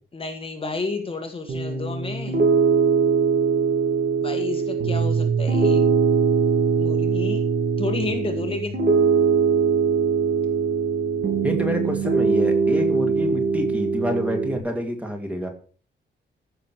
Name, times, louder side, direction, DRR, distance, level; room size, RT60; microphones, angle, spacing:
voice 1, 0.1-2.4 4.2-5.8 6.8-7.4 7.8-8.8, left 3 dB, 30° left, 5 dB, 1.7 m, -31 dB
Piano, 1.5-14.6, right 5 dB, 55° right, 3.2 m, -21 dB
voice 2, 11.4-15.5, equal, 5° right, 3 dB, 2.5 m, -28 dB
14.5 x 6.7 x 6.2 m, 0.41 s
wide cardioid pair, 175°, 19 cm